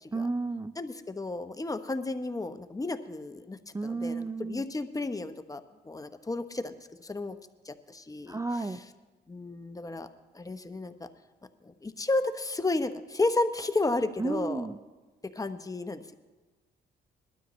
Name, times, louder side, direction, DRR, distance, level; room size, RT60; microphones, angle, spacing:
voice 1, 0.1-0.7 3.7-4.6 8.3-8.8 14.2-14.8, right 3 dB, 15° right, 11 dB, 0.5 m, -32 dB
voice 2, 0.8-7.3 7.6-8.4 9.3-10.1 10.3-10.9 11.6-14.7 15.3-16.1, left 2 dB, 15° left, 9 dB, 0.8 m, -32 dB
21.0 x 12.5 x 3.1 m, 1.2 s
cardioid pair, 90°, 20 cm